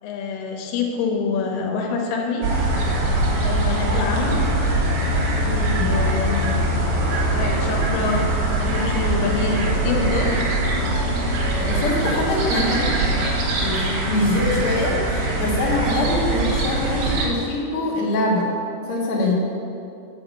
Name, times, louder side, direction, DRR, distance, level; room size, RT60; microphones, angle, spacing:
voice 1, 0.0-2.5 3.3-4.3 5.4-6.5 7.3-8.3 8.6-10.3, left 4 dB, 80° left, 0 dB, 3.4 m, -26 dB
sound 1, 2.4-17.3, right 1 dB, 85° right, 4.2 m, -22 dB
voice 2, 11.5-12.9 13.6-18.5 18.9-19.3, left 2 dB, 60° left, -4 dB, 1.5 m, -23 dB
9.0 x 5.7 x 7.2 m, 2.7 s
omnidirectional pair, 5.2 m